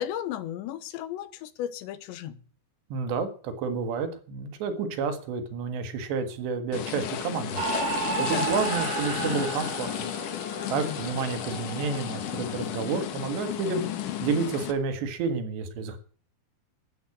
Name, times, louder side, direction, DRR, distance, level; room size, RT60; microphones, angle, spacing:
voice 1, 0.0-2.4 8.0-8.5 10.6-11.0, left 11 dB, 85° left, 3.4 m, -35 dB
voice 2, 2.9-7.6 8.3-10.1 10.7-13.8 14.2-16.0, right 5 dB, 75° right, 3.9 m, -30 dB
sound 1, 6.7-14.7, left 11 dB, 65° left, 2.2 m, -33 dB
sound 2, 7.6-13.1, right 5 dB, 60° right, 5.0 m, -33 dB
13.0 x 9.3 x 8.5 m
omnidirectional pair, 5.1 m